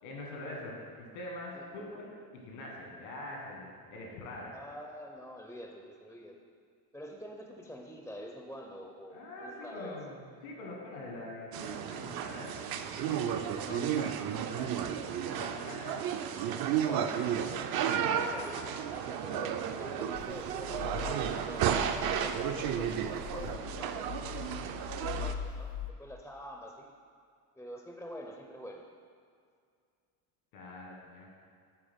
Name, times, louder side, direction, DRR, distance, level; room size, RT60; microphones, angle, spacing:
voice 1, 0.0-2.1 2.4-4.5 9.1-14.7 15.2-16.0 16.5-16.8 17.9-18.7 30.5-31.3, left 2 dB, 80° left, -1 dB, 1.6 m, -44 dB
voice 2, 4.5-6.4 6.9-10.0 16.8-17.3 18.1-24.1 25.0-26.9 27.6-28.9, equal, 5° left, 1 dB, 0.4 m, -46 dB
sound 1, 11.5-25.3, right 9 dB, 50° right, 0.5 m, -33 dB
sound 2, 20.1-25.9, left 7 dB, 55° left, 0.5 m, -42 dB
10.0 x 3.5 x 3.5 m, 2.2 s
supercardioid pair, 70°, 49 cm